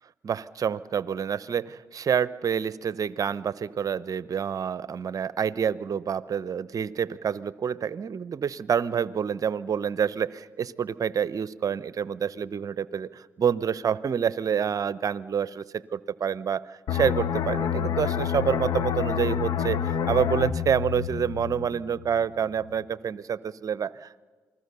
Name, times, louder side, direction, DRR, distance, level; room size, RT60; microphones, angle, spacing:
voice 1, 0.2-24.2, right 7 dB, 50° right, 18 dB, 0.8 m, -28 dB
sound 1, 16.9-22.3 22.6-22.8, left 8 dB, 65° left, 1.2 m, -28 dB
28.0 x 20.5 x 6.8 m, 1.4 s
hypercardioid pair, 50°, 7 cm